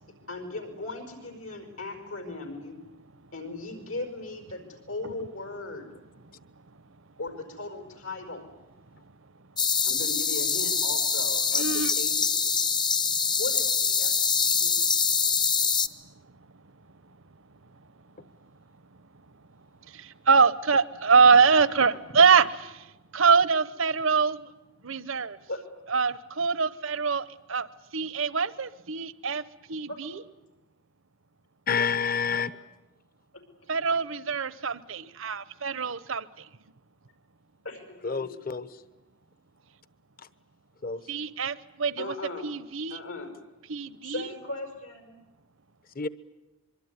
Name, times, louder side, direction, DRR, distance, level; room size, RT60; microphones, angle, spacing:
voice 1, 0.3-2.8 3.3-5.9 7.2-8.5 9.8-12.5 13.4-14.2 14.5-14.8 21.9-22.0 25.5-25.7 29.9-30.0 33.3-33.4 37.6-38.3 42.0-42.5 42.9-43.3 44.0-45.2, left 2 dB, 80° left, 5.2 m, -38 dB
sound 1, 9.6-15.9, left 5 dB, 20° left, 0.9 m, -25 dB
voice 2, 11.5-11.9 19.9-22.4 22.7-22.9 23.1-24.5 24.8-25.4 25.9-27.7 27.9-29.4 29.7-30.2 33.7-36.5 41.1-42.2 42.4-43.0 43.7-44.3, right 5 dB, 65° right, 0.9 m, -24 dB
voice 3, 31.7-32.5 38.0-38.8 40.8-41.0 45.9-46.1, left 6 dB, 40° left, 1.0 m, -28 dB
24.5 x 23.5 x 9.6 m
head